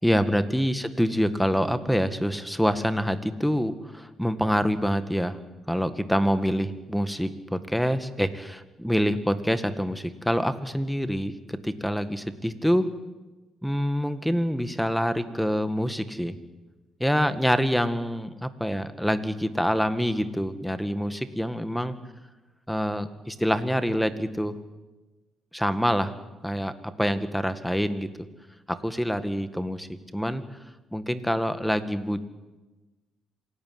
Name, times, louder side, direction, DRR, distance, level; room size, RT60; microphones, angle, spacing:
voice 1, 0.0-5.4 5.7-12.9 13.6-16.4 17.0-22.0 22.7-24.6 25.5-26.1 26.4-28.1 28.7-30.4 30.9-32.2, equal, ahead, 11 dB, 1.9 m, -26 dB
26.5 x 18.0 x 9.6 m, 1.2 s
cardioid pair, 90°, 0 cm